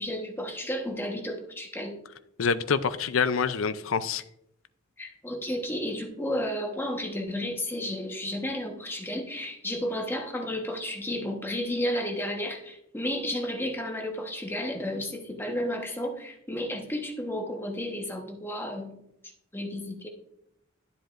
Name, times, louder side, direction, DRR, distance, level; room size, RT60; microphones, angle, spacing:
voice 1, 0.0-2.0 5.0-19.0 19.5-20.1, left 1 dB, 10° left, 1 dB, 1.1 m, -32 dB
voice 2, 2.4-4.2, left 6 dB, 70° left, 13 dB, 0.5 m, -26 dB
12.0 x 7.8 x 2.5 m, 0.77 s
head